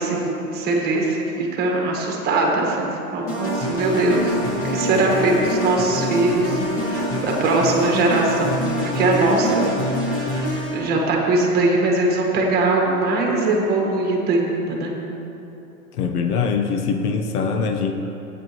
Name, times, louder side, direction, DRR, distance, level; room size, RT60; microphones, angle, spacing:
voice 1, 0.0-4.4 4.6-9.6 10.0-14.9, right 2 dB, 20° right, 0 dB, 1.5 m, -21 dB
sound 1, 3.3-10.9, equal, 35° left, 2.0 m, -25 dB
voice 2, 16.0-17.9, left 5 dB, 70° left, 4 dB, 1.1 m, -22 dB
15.5 x 9.3 x 3.1 m, 3.0 s
hypercardioid pair, 145°, 46 cm